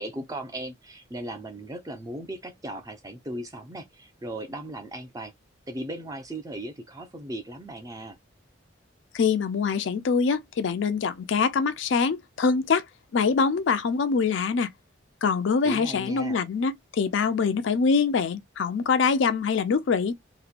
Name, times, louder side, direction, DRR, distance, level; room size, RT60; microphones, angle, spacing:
voice 1, 0.0-5.3 5.7-8.2 15.6-16.4, right 1 dB, 15° right, 0.5 m, -37 dB
voice 2, 9.1-12.8 13.1-14.7 15.2-20.1, left 5 dB, 70° left, 0.4 m, -24 dB
2.9 x 2.2 x 2.4 m
head